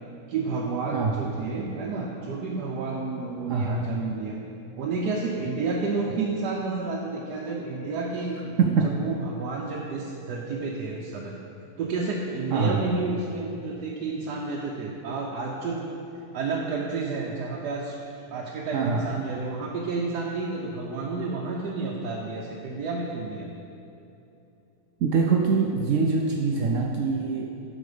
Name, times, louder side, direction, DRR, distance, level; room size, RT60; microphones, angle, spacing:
voice 1, 0.3-4.4 4.8-11.4 11.8-15.8 16.3-18.0 18.3-23.5, right 3 dB, 85° right, -2 dB, 1.3 m, -30 dB
voice 2, 3.5-3.8 8.6-8.9 12.5-12.8 18.7-19.1 25.0-27.5, right 5 dB, 65° right, 1 dB, 0.8 m, -23 dB
8.0 x 6.0 x 5.0 m, 2.8 s
omnidirectional pair, 1.7 m